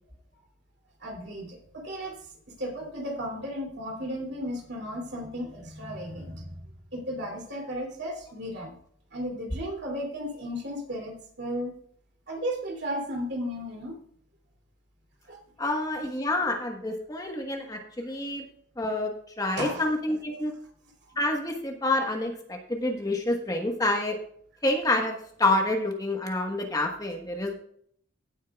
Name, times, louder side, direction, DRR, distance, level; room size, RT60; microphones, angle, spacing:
voice 1, 1.0-2.1 2.6-6.6 6.9-8.7 9.1-11.7 12.3-14.0 15.3-15.4 19.6-19.8 20.4-20.5, equal, 55° right, 1 dB, 2.8 m, -34 dB
voice 2, 15.6-18.4 18.8-20.5 21.2-24.2 24.6-27.5, left 2 dB, 20° left, 2 dB, 1.3 m, -28 dB
16.5 x 8.4 x 2.4 m, 0.63 s
head